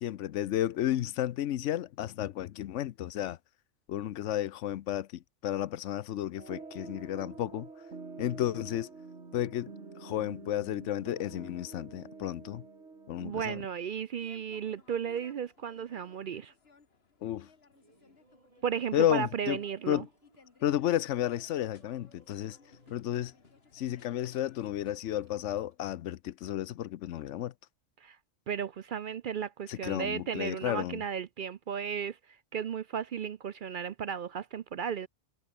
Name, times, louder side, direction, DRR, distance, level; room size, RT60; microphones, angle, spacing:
voice 1, 0.0-3.4 3.9-7.7 8.2-8.9 9.3-9.7 10.0-12.6 13.1-13.6 17.2-17.5 18.9-19.6 19.9-20.1 20.6-22.6 22.9-23.3 23.7-27.5 29.7-31.0, left 12 dB, 80° left, 1.0 m, -32 dB
sound 1, 6.4-13.6, right 4 dB, 70° right, 2.7 m, -47 dB
voice 2, 13.2-16.5 18.6-20.0 28.0-28.2 28.5-32.2 32.5-35.1, right 7 dB, 55° right, 0.6 m, -34 dB
sound 2, 14.2-25.0, left 4 dB, 55° left, 2.1 m, -61 dB
Laughter, 17.7-25.8, right 2 dB, 30° right, 3.0 m, -65 dB
omnidirectional pair, 1.2 m